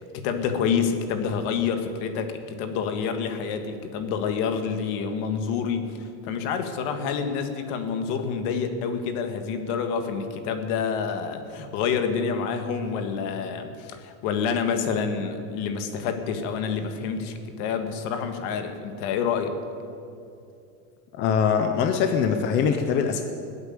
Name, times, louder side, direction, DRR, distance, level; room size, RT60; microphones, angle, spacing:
voice 1, 0.1-19.5, left 6 dB, 50° left, 7 dB, 1.7 m, -28 dB
voice 2, 21.1-23.2, left 7 dB, 25° left, 6 dB, 0.5 m, -22 dB
18.5 x 8.5 x 9.2 m, 2.6 s
supercardioid pair, 170°, 48 cm